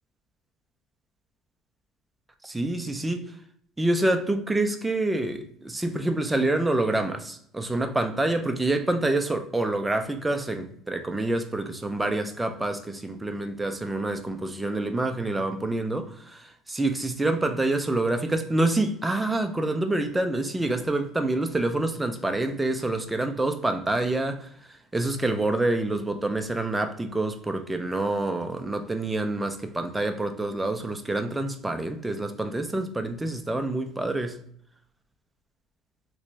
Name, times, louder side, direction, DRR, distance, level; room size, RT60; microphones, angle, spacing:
voice 1, 2.4-3.2 3.8-24.5 24.9-34.4, right 2 dB, 10° right, 0.4 m, -27 dB
3.0 x 2.5 x 3.2 m
cardioid pair, 110°, 0 cm